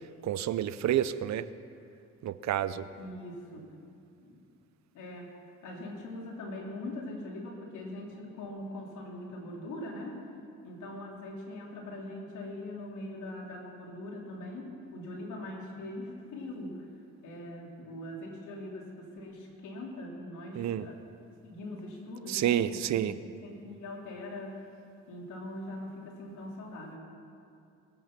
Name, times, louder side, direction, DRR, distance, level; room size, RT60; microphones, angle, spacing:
voice 1, 0.2-1.5 2.2-2.9 20.6-20.9 22.3-23.1, right 11 dB, 65° right, 14 dB, 0.6 m, -29 dB
voice 2, 3.0-3.7 4.2-4.4 4.9-5.3 5.6-10.2 10.6-16.9 17.2-21.0 21.4-23.1 23.4-24.7 25.1-27.0, left 1 dB, 80° left, -1 dB, 3.0 m, -42 dB
21.0 x 8.5 x 5.9 m, 2.5 s
cardioid pair, 90°, 30 cm